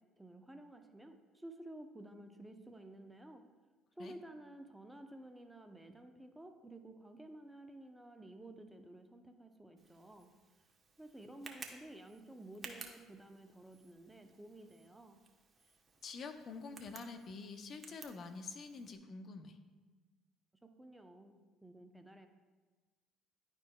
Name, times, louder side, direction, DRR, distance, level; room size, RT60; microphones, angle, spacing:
voice 1, 0.2-3.4 4.0-10.3 11.0-15.2 20.8-21.4 21.6-22.3, right 1 dB, 10° right, 6 dB, 0.7 m, -53 dB
Tick, 9.8-19.0, right 4 dB, 35° right, 1.0 m, -56 dB
voice 2, 16.0-19.5, left 4 dB, 50° left, 8 dB, 0.6 m, -47 dB
10.5 x 4.5 x 2.3 m, 1.3 s
hypercardioid pair, 65°, 0 cm